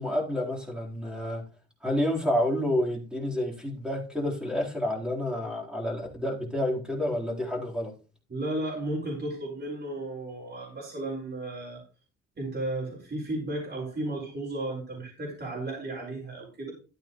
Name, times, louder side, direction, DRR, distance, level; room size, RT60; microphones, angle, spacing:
voice 1, 0.0-1.4 1.8-7.9, left 1 dB, 5° right, -3 dB, 4.3 m, -29 dB
voice 2, 8.3-11.8 12.4-16.7, right 2 dB, 35° right, -3 dB, 5.7 m, -34 dB
13.0 x 8.9 x 3.2 m, 0.35 s
cardioid pair, 90°, 30 cm